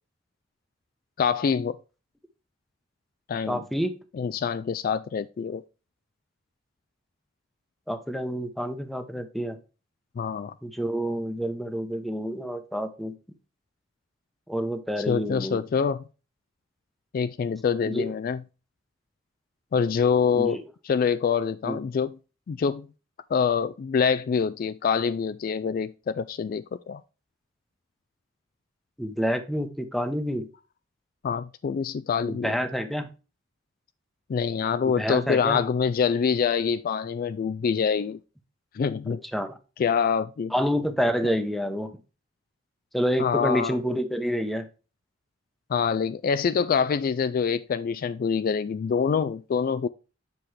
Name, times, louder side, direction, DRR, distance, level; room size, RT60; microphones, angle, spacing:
voice 1, 1.2-1.8 3.3-3.6 4.1-5.6 10.2-10.5 15.1-16.0 17.1-18.4 19.7-20.6 20.8-22.2 22.5-22.9 23.3-27.0 31.2-32.5 34.3-38.2 38.7-39.2 39.8-40.5 41.2-41.3 43.2-43.8 45.7-49.9, left 6 dB, 50° left, 0.3 m, -25 dB
voice 2, 3.5-4.0 7.9-9.6 10.6-13.1 14.5-15.6 17.9-18.1 20.3-20.5 21.6-21.8 29.0-30.5 32.2-33.1 35.0-35.6 39.3-39.6 40.5-42.0 42.9-44.7, equal, ahead, 0.8 m, -28 dB
7.7 x 5.9 x 3.2 m
head